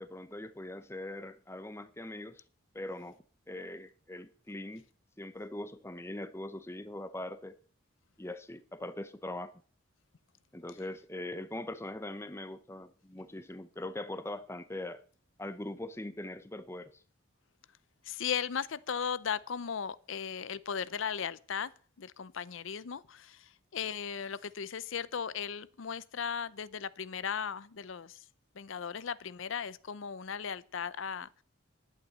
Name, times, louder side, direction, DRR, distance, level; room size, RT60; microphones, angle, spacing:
voice 1, 0.0-2.4 2.7-3.2 3.5-4.8 5.2-7.6 8.2-9.6 10.5-15.0 15.4-17.0, left 1 dB, 15° left, 0.7 m, -41 dB
voice 2, 18.0-21.7 22.0-28.2 28.5-31.3, left 7 dB, 75° left, 0.6 m, -37 dB
11.0 x 9.0 x 7.2 m
head